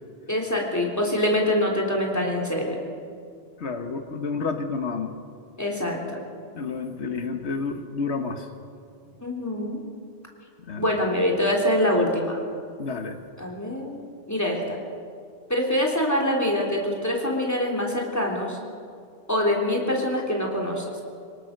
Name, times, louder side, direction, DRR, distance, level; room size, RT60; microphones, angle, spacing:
voice 1, 0.3-2.8 5.6-6.2 9.2-9.8 10.8-12.4 13.4-14.8 15.5-18.6 19.3-20.8, left 1 dB, 15° left, -1 dB, 3.2 m, -25 dB
voice 2, 3.6-5.2 6.5-8.5 10.6-10.9 12.8-13.2, left 4 dB, 85° left, 6 dB, 1.6 m, -30 dB
24.0 x 18.5 x 6.6 m, 2.3 s
omnidirectional pair, 1.1 m